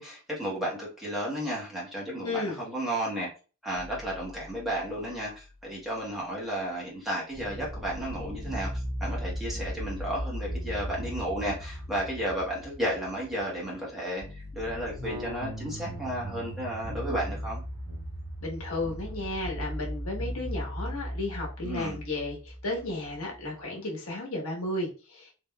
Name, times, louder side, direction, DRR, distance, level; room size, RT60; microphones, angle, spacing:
voice 1, 0.0-3.3 3.6-17.6 21.6-22.0, right 1 dB, ahead, -6 dB, 1.2 m, -33 dB
voice 2, 2.2-2.6 18.4-25.3, left 2 dB, 80° left, -1 dB, 1.1 m, -34 dB
sound 1, 3.7-5.1 7.3-23.4, equal, 55° right, 1.0 m, -37 dB
3.7 x 2.9 x 2.2 m, 0.34 s
head